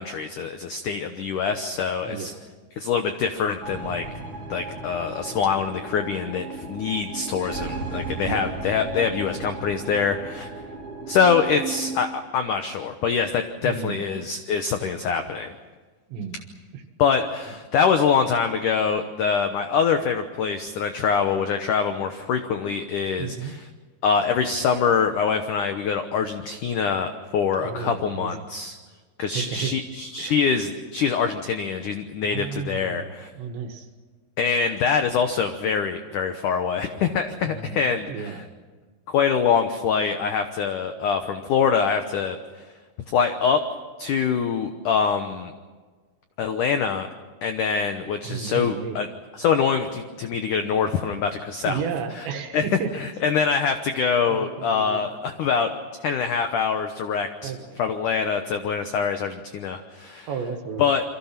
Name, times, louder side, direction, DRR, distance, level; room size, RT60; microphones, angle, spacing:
voice 1, 0.0-2.3 2.8-4.1 4.5-10.5 11.1-15.6 17.0-23.6 24.0-28.8 29.2-33.3 34.4-38.3 39.1-42.4 43.1-43.6 44.0-45.5 46.4-47.1 47.4-49.1 49.3-51.8 52.2-52.3 52.5-52.6 52.9-55.7 56.0-57.5 57.8-60.3 60.8-61.0, left 6 dB, 80° left, 7 dB, 1.8 m, -24 dB
voice 2, 2.1-2.4 8.2-8.6 13.6-14.1 16.1-16.4 16.7-16.8 23.2-23.5 27.6-28.5 29.3-29.7 30.2-30.4 32.2-33.9 37.4-38.4 48.2-49.0 51.7-52.9 54.3-55.0 57.4-57.8 60.3-60.9, right 6 dB, 75° right, 6 dB, 3.8 m, -33 dB
sound 1, 3.6-12.0, right 4 dB, 40° right, 2.7 m, -35 dB
29.0 x 24.0 x 5.9 m, 1.4 s
omnidirectional pair, 5.2 m